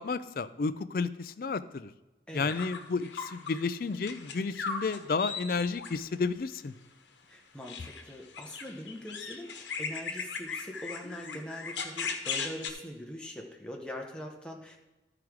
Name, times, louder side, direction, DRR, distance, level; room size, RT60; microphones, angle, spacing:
voice 1, 0.0-1.9 2.3-6.7, left 4 dB, 50° left, 14 dB, 0.4 m, -32 dB
voice 2, 2.3-2.6 7.3-14.8, left 1 dB, 5° left, 0 dB, 0.9 m, -42 dB
sound 1, 2.5-3.6 3.9-6.0 7.6-12.7, left 5 dB, 85° left, 1.0 m, -38 dB
12.5 x 4.9 x 4.7 m, 1.1 s
head